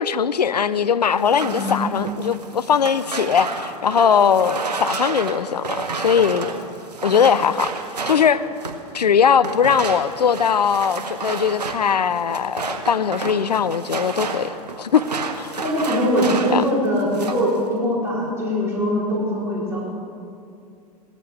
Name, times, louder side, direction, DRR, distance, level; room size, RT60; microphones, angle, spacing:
voice 1, 0.0-6.5 7.0-7.7 8.1-8.4 8.9-15.0 15.4-15.5 16.5-16.6, left 7 dB, 85° left, 15 dB, 0.5 m, -20 dB
sound 1, 1.2-8.9 9.4-16.7 17.0-17.5, right 4 dB, 80° right, 1.0 m, -30 dB
voice 2, 1.4-1.9 15.6-19.8, equal, 15° right, -7 dB, 4.0 m, -22 dB
17.5 x 13.5 x 3.5 m, 2.5 s
figure-of-eight pair, 90°, 20 cm